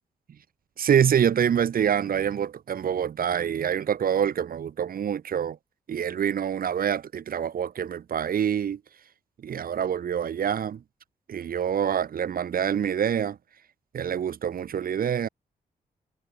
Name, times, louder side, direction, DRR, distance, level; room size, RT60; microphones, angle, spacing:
voice 1, 0.8-5.6 5.9-8.8 9.4-10.8 11.3-13.4 13.9-15.3, right 8 dB, 75° right, 6.4 m, -26 dB
cardioid pair, 100°, 15 cm